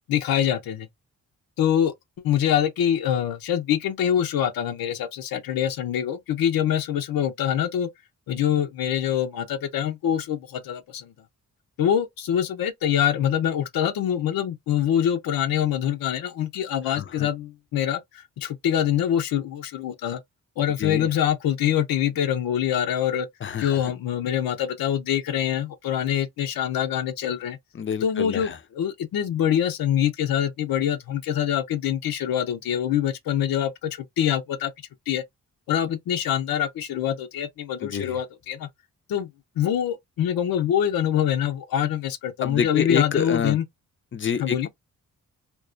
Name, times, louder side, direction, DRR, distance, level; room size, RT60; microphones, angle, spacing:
voice 1, 0.1-0.9 1.6-1.9 2.2-7.9 8.3-11.1 11.8-20.2 20.6-23.3 23.6-27.6 28.0-34.7 35.1-35.2 35.7-38.7 39.1-39.3 39.6-43.6 44.4-44.7, left 10 dB, 85° left, 0.5 m, -25 dB
voice 2, 16.9-17.3 20.8-21.1 23.4-23.8 27.8-28.6 37.8-38.2 42.4-43.6 44.1-44.7, left 7 dB, 35° left, 0.4 m, -27 dB
2.3 x 2.2 x 2.4 m
cardioid pair, 65°, 34 cm